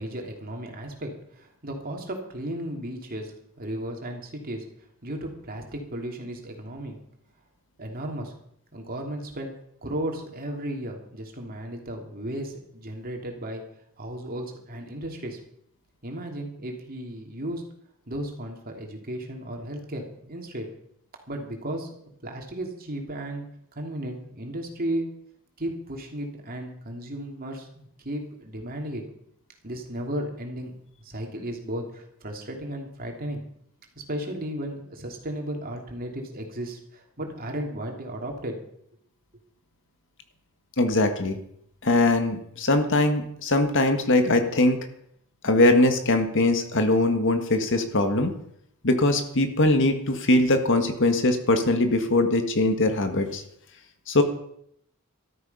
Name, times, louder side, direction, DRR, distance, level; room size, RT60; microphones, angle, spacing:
voice 1, 0.0-4.7 5.0-7.0 7.8-8.3 8.7-9.5 9.8-13.6 14.0-15.4 16.0-17.6 18.1-20.7 21.3-21.9 22.2-23.5 23.7-25.1 25.6-29.0 29.6-30.7 31.0-33.4 34.1-38.6, right 1 dB, 45° right, 2 dB, 3.0 m, -34 dB
voice 2, 40.8-41.4 41.8-44.8 45.4-48.3 48.8-53.4 54.1-54.2, left 2 dB, 60° left, 7 dB, 1.7 m, -21 dB
13.5 x 13.0 x 5.5 m, 0.72 s
head